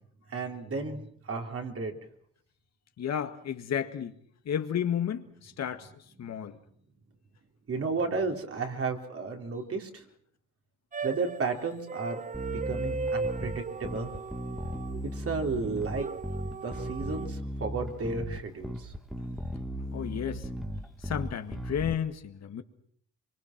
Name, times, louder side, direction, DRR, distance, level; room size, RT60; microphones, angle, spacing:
voice 1, 0.3-2.0 7.7-10.1 11.0-12.2 12.7-14.1 15.1-16.1 16.6-18.9, right 4 dB, 50° right, 3.8 m, -33 dB
voice 2, 3.0-4.2 4.5-6.6 19.9-20.5 21.0-22.6, left 9 dB, 60° left, 1.9 m, -32 dB
sound 1, 10.9-15.3 15.9-17.3, right 4 dB, 25° right, 0.9 m, -37 dB
Bass guitar, 12.3-21.9, equal, ahead, 2.0 m, -37 dB
24.5 x 24.5 x 6.0 m
cardioid pair, 90°, 30 cm